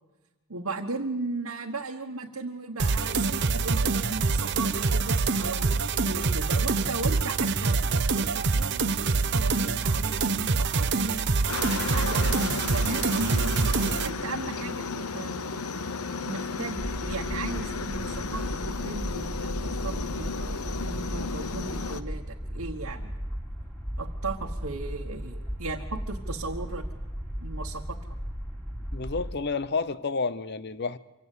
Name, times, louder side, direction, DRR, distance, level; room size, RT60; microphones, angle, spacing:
voice 1, 0.5-5.8 6.0-7.8 8.1-11.5 11.9-15.5 16.2-23.1 24.0-26.8 27.4-28.0, right 3 dB, 75° right, 1.4 m, -36 dB
sound 1, 2.8-14.1, right 4 dB, 50° right, 0.8 m, -25 dB
Aircraft, 11.5-22.0, left 4 dB, 85° left, 1.0 m, -33 dB
sound 2, 16.8-29.3, equal, 5° left, 3.3 m, -36 dB
voice 2, 28.9-31.0, left 4 dB, 50° left, 0.7 m, -30 dB
25.0 x 16.5 x 8.4 m
head